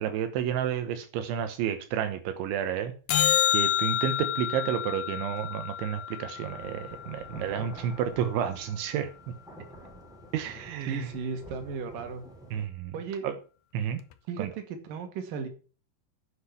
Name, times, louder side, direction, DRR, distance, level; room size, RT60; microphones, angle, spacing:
voice 1, 0.0-2.9 3.5-9.1 10.3-11.1 12.5-12.9 13.2-13.3 13.7-14.0 14.4-14.5, right 9 dB, 80° right, 3.5 m, -31 dB
sound 1, 3.1-7.6 14.1-14.2, left 11 dB, 75° left, 2.8 m, -29 dB
sound 2, 5.4-5.5 6.2-12.7, equal, ahead, 3.5 m, -48 dB
voice 2, 10.9-12.2 12.9-13.3 14.3-15.5, right 5 dB, 55° right, 3.5 m, -35 dB
10.0 x 8.0 x 7.3 m
omnidirectional pair, 5.4 m